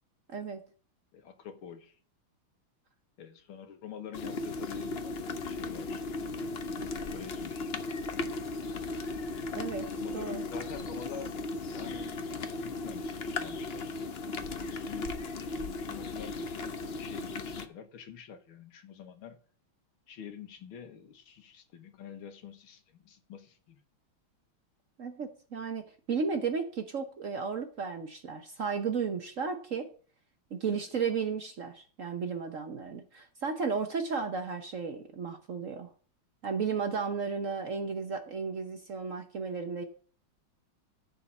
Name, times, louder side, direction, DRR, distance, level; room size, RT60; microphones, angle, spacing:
voice 1, 0.3-0.6 9.5-10.4 25.0-29.9 30.5-35.9 36.4-39.8, right 5 dB, 50° right, 1.0 m, -34 dB
voice 2, 1.1-2.0 3.2-5.1 5.5-6.0 7.1-7.6 9.9-13.9 14.6-15.2 15.5-19.4 20.1-23.8 30.7-30.9, left 8 dB, 80° left, 2.0 m, -46 dB
sound 1, 4.1-17.7, left 3 dB, 55° left, 0.7 m, -36 dB
13.5 x 4.7 x 7.3 m
omnidirectional pair, 2.3 m